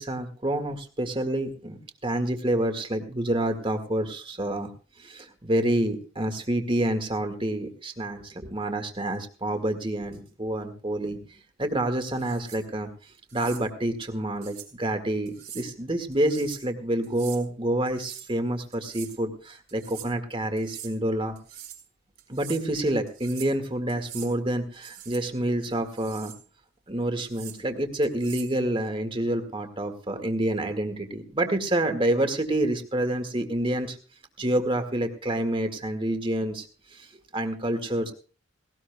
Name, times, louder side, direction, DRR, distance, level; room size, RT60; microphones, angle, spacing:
voice 1, 0.0-4.7 5.0-11.2 11.6-12.9 13.3-21.4 22.3-26.3 26.9-34.0 34.4-36.7 36.9-38.1, right 1 dB, 25° right, 7 dB, 1.9 m, -28 dB
sound 1, 12.2-12.6 13.3-13.6 14.4-14.7 15.3-15.7 16.1-16.7 17.0-17.4 17.9-18.3 18.7-19.2 19.7-20.1 20.6-20.9 21.4-21.8 22.2-22.6 23.1-23.6 23.9-24.3 24.7-25.2 25.7-26.4 27.2-27.6 28.0-28.6, right 11 dB, 55° right, 4.8 m, -43 dB
18.5 x 18.5 x 2.3 m, 0.37 s
head